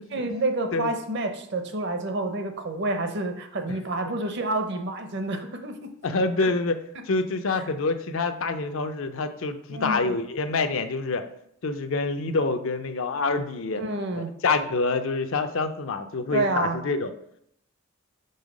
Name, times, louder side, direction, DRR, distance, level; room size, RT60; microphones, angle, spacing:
voice 1, 0.1-5.9 6.4-6.5 9.7-10.2 13.7-14.3 16.3-16.8, right 2 dB, 50° right, 6 dB, 0.7 m, -29 dB
voice 2, 6.0-6.8 7.1-11.2 11.6-13.8 14.2-17.1, left 3 dB, 60° left, 8 dB, 0.5 m, -26 dB
5.5 x 3.6 x 5.0 m, 0.73 s
head